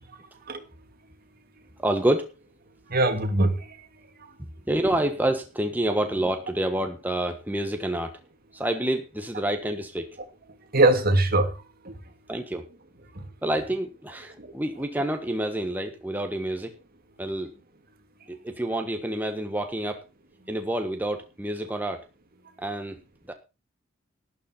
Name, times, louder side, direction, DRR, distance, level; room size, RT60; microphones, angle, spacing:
voice 1, 1.8-2.3 4.7-8.2 8.5-10.2 12.3-12.6 13.4-16.8 17.2-17.5 18.3-20.0 20.5-22.0 22.6-23.0 23.3-23.4, right 1 dB, 10° right, 1.3 m, -28 dB
voice 2, 2.9-3.9 4.2-4.4 10.7-11.9 13.1-13.3 14.4-14.5, right 2 dB, 50° right, 2.3 m, -23 dB
12.5 x 11.5 x 4.4 m
head